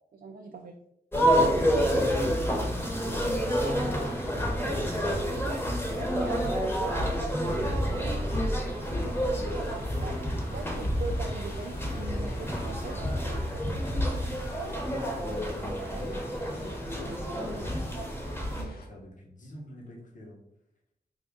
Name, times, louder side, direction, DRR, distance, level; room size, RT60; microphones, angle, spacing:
voice 1, 0.1-0.7 6.1-7.0 7.4-8.1 8.9-12.9 13.3-13.4 15.2-15.3 18.6-18.8, right 4 dB, 65° right, 3 dB, 0.4 m, -41 dB
sound 1, 1.1-18.6, equal, 15° left, 1.0 m, -29 dB
voice 2, 2.5-5.3 6.4-6.5 8.2-8.3 8.8-9.1 12.2-12.5 14.6-17.6 18.2-20.4, left 1 dB, 55° left, -2 dB, 1.0 m, -45 dB
sound 2, 3.6-18.9, left 1 dB, 85° left, 0.7 m, -48 dB
3.6 x 2.4 x 3.6 m, 0.76 s
cardioid pair, 65°, 16 cm